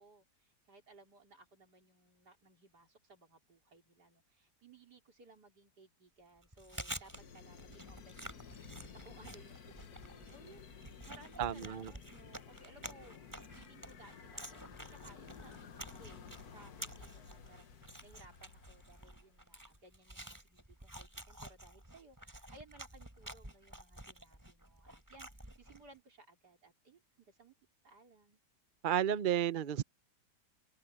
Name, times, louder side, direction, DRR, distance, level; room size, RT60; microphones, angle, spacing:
voice 1, 0.0-27.5 27.8-28.4, right 3 dB, 75° right, 4.5 m, -61 dB
Chewing mastication, 6.4-25.9, right 1 dB, 10° right, 3.4 m, -50 dB
sound 1, 7.1-19.4, left 7 dB, 65° left, 1.8 m, -54 dB
voice 2, 11.4-11.9 28.8-29.8, right 10 dB, 50° right, 0.6 m, -32 dB
open air
omnidirectional pair, 1.8 m